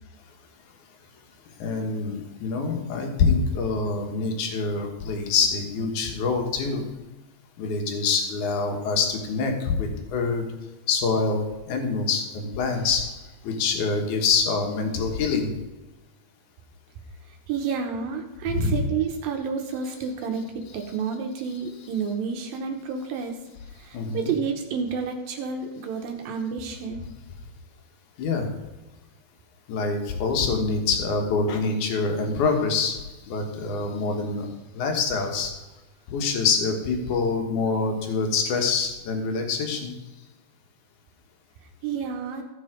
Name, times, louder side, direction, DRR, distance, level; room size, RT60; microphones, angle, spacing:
voice 1, 1.6-6.8 7.6-10.4 10.9-13.0 13.4-15.5 18.5-18.7 23.9-24.3 28.2-28.5 29.7-33.0 33.3-34.5 34.7-35.5 36.1-39.9, left 4 dB, 60° left, 3 dB, 2.4 m, -25 dB
voice 2, 17.5-20.4 20.7-23.4 23.8-27.0 41.8-42.4, right 6 dB, 75° right, 3 dB, 2.5 m, -30 dB
15.5 x 5.5 x 5.0 m, 1.1 s
omnidirectional pair, 4.6 m